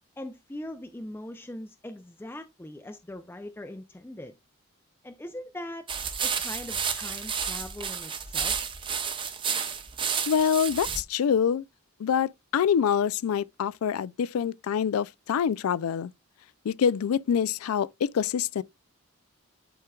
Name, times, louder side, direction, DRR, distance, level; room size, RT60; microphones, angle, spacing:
voice 1, 0.2-4.3 5.0-5.9 6.2-8.6, left 1 dB, 10° left, 0.4 m, -41 dB
sound 1, 5.9-11.0, right 6 dB, 25° right, 0.7 m, -31 dB
voice 2, 10.3-11.6 12.0-16.1 16.6-18.6, left 7 dB, 80° left, 0.3 m, -26 dB
11.0 x 4.4 x 2.3 m
head